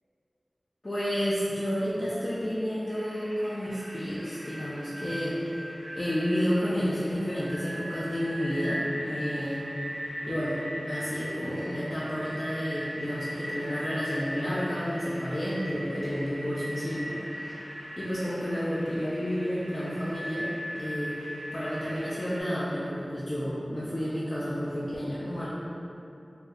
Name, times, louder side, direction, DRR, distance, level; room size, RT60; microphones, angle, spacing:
voice 1, 0.8-5.6 5.9-9.6 10.3-10.6 10.9-17.2 17.4-17.5 18.0-20.5 20.8-25.5, equal, 40° left, -9 dB, 0.4 m, -31 dB
sound 1, 2.9-22.4, equal, 85° right, 0.7 m, -39 dB
2.4 x 2.1 x 3.5 m, 2.8 s
wide cardioid pair, 55°, 0 cm